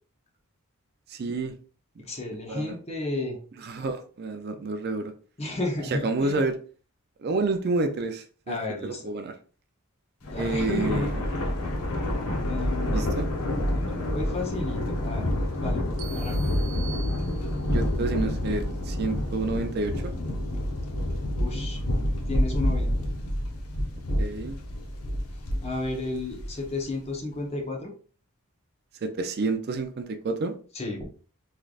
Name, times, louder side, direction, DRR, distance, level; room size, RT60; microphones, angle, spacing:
voice 1, 1.1-1.5 2.5-2.8 3.6-5.1 5.9-6.6 7.2-8.6 8.8-9.3 10.4-11.2 12.9-13.3 17.7-20.1 24.2-24.6 29.0-30.5, right 3 dB, 45° right, 7 dB, 0.4 m, -29 dB
voice 2, 2.0-3.4 3.8-3.9 5.4-6.4 8.5-9.1 10.3-11.1 12.4-13.1 13.6-15.3 15.6-15.8 16.1-16.5 21.4-21.8 22.3-22.9 25.6-27.9 30.7-31.1, left 2 dB, 30° left, 0 dB, 0.8 m, -32 dB
Thunder, 10.2-26.8, left 1 dB, 80° left, 0.8 m, -28 dB
sound 1, 16.0-17.9, right 8 dB, 90° right, 0.6 m, -44 dB
3.7 x 3.2 x 2.4 m, 0.40 s
head